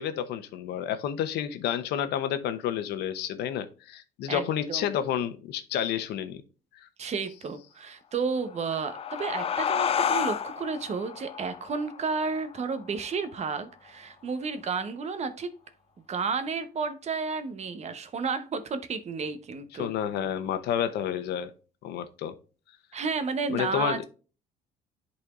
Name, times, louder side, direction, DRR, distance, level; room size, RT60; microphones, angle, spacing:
voice 1, 0.0-6.4 6.8-6.9 19.8-21.5 21.8-22.4 23.5-24.0, left 9 dB, 80° left, 0.8 m, -30 dB
voice 2, 4.3-4.9 7.0-15.5 16.1-19.9 22.9-24.0, right 5 dB, 40° right, 0.9 m, -32 dB
sound 1, 8.4-13.6, left 7 dB, 35° left, 0.4 m, -31 dB
10.5 x 4.1 x 2.4 m
cardioid pair, 110°, 17 cm